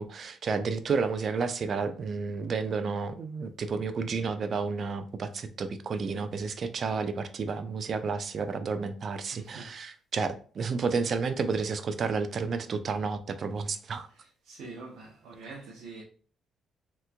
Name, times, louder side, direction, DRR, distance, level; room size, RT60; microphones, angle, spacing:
voice 1, 0.0-14.1, right 5 dB, 50° right, 0.4 m, -31 dB
voice 2, 9.3-9.7 14.2-16.0, right 3 dB, 85° right, 0.7 m, -45 dB
3.3 x 3.0 x 2.2 m
cardioid pair, 90°, 0 cm